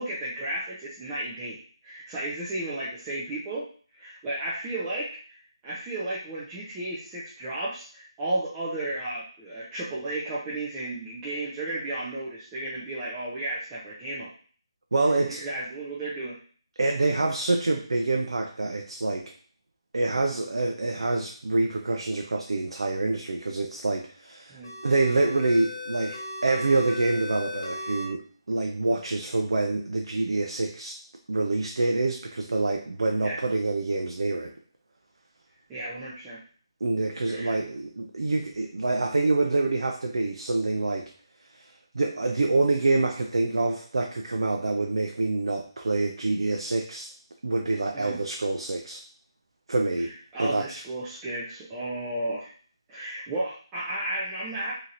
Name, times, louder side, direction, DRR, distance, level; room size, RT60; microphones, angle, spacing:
voice 1, 0.0-1.6 1.8-3.6 3.9-14.3 15.3-16.3 24.5-24.7 33.2-33.4 35.7-36.4 37.3-37.6 47.9-48.2 50.0-52.5 52.9-54.7, right 1 dB, 15° right, -8 dB, 0.4 m, -33 dB
voice 2, 14.9-15.4 16.8-19.3 19.9-28.2 28.5-31.0 31.3-34.5 36.8-41.1 41.5-41.6 41.9-47.1 47.4-49.0 49.7-50.1 50.4-50.8, right 2 dB, 80° right, 2 dB, 0.4 m, -26 dB
sound 1, 24.6-28.1, left 1 dB, 55° left, 1.0 m, -37 dB
2.8 x 2.7 x 2.5 m, 0.43 s
figure-of-eight pair, 165°, 3 cm